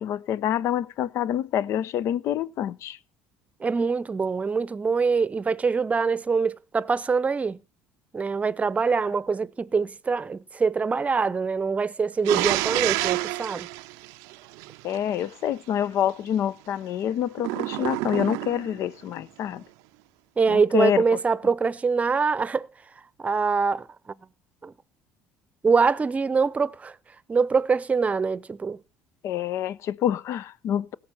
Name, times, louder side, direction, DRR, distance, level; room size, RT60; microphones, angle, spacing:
voice 1, 0.0-3.0 14.8-19.6 20.5-21.0 29.2-30.9, left 10 dB, 60° left, 0.6 m, -27 dB
voice 2, 3.6-7.6 8.1-13.7 20.4-22.7 23.2-23.9 24.6-24.7 25.6-27.0 27.3-28.8, right 5 dB, 25° right, 0.7 m, -24 dB
sound 1, 12.2-15.0 17.4-18.8, right 20 dB, 80° right, 0.5 m, -28 dB
17.0 x 6.5 x 5.6 m
supercardioid pair, 80°, 5 cm